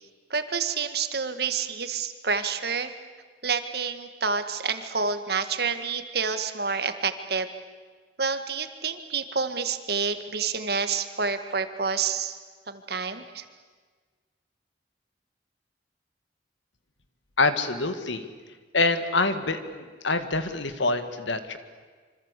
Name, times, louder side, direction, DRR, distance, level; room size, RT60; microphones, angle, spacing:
voice 1, 0.3-2.9 3.4-7.5 8.2-12.4 12.7-13.5, right 5 dB, 60° right, 9 dB, 1.8 m, -28 dB
voice 2, 17.4-18.3 18.7-21.6, left 3 dB, 90° left, 9 dB, 2.0 m, -26 dB
26.5 x 25.5 x 8.4 m, 1.5 s
head